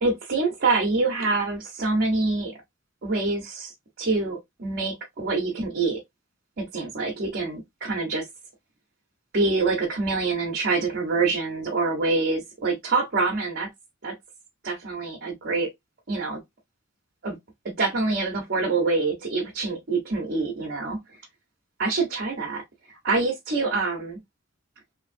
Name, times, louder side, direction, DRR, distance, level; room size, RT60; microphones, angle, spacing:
voice 1, 0.0-2.6 3.0-6.0 6.6-8.3 9.3-13.7 14.0-14.1 14.6-15.7 16.1-16.4 17.2-17.4 17.8-21.0 21.8-22.6 23.0-24.2, right 3 dB, 55° right, 0.7 m, -26 dB
3.0 x 2.6 x 2.5 m
head